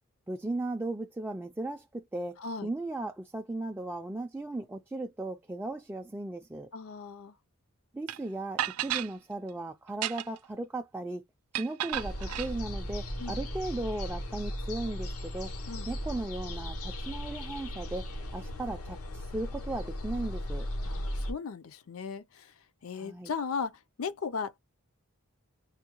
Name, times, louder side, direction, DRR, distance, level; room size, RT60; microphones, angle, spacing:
voice 1, 0.3-6.7 7.9-11.2 11.6-15.5 15.9-20.7 23.0-23.3, right 2 dB, 10° right, 0.3 m, -36 dB
voice 2, 6.7-7.3 13.2-13.4 15.7-15.9 20.8-22.5 22.8-24.6, left 5 dB, 70° left, 0.5 m, -37 dB
sound 1, 8.1-8.2 8.6-9.1 9.9-10.5 11.5-12.5, right 12 dB, 90° right, 0.4 m, -33 dB
sound 2, 11.9-21.3, equal, 85° left, 0.9 m, -37 dB
3.5 x 2.2 x 2.9 m
head